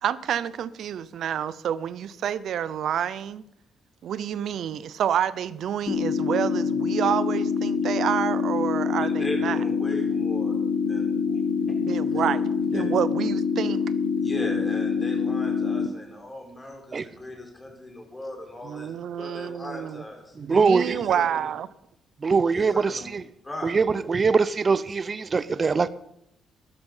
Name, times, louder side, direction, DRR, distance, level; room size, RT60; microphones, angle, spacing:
voice 1, 0.0-3.4 4.0-9.6 11.9-13.8 18.6-20.0 20.4-21.7, right 9 dB, 70° right, 0.7 m, -28 dB
sound 1, 5.9-15.9, left 5 dB, 70° left, 1.0 m, -25 dB
voice 2, 9.0-12.8 14.2-21.5 22.5-23.1 23.4-23.8, left 1 dB, 15° left, 4.8 m, -38 dB
voice 3, 20.4-21.0 22.2-23.2 23.6-25.9, right 5 dB, 35° right, 0.6 m, -22 dB
12.0 x 12.0 x 5.6 m
cardioid pair, 90°, 0 cm